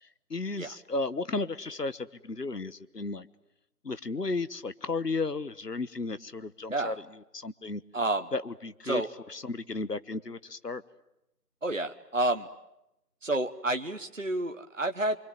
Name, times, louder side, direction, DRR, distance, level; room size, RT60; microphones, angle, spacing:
voice 1, 0.3-3.3 3.8-6.9 7.3-7.8 8.3-9.0 9.3-10.8, left 3 dB, 80° left, 15 dB, 1.3 m, -34 dB
voice 2, 7.9-8.3 8.9-9.1 11.6-12.5 13.2-15.2, right 2 dB, 50° right, 7 dB, 1.0 m, -29 dB
26.0 x 25.0 x 9.2 m, 0.87 s
figure-of-eight pair, 180°, 48 cm